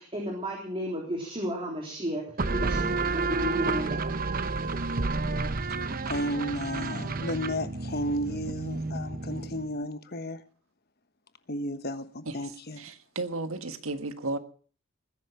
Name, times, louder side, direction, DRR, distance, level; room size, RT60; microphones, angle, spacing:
voice 1, 0.0-2.2 2.5-3.9, equal, 25° right, 3.7 m, -33 dB
sound 1, 2.4-9.7, right 3 dB, 45° right, 0.9 m, -30 dB
voice 2, 6.1-10.4 11.5-12.9, equal, 50° left, 1.2 m, -33 dB
voice 3, 12.8-14.4, right 2 dB, 85° right, 1.6 m, -34 dB
20.5 x 10.0 x 5.8 m
head